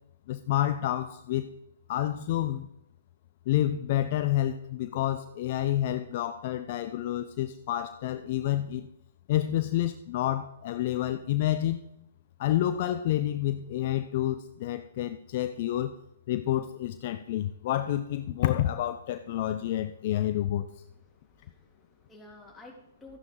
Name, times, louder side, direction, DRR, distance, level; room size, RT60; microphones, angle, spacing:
voice 1, 0.3-1.5 1.9-2.7 3.5-8.9 9.3-11.8 12.4-15.9 16.3-20.7, left 13 dB, 45° left, 10 dB, 0.6 m, -29 dB
voice 2, 20.7-23.2, left 2 dB, 10° left, -2 dB, 3.1 m, -52 dB
13.0 x 10.5 x 3.9 m, 0.83 s
figure-of-eight pair, 125°, 0 cm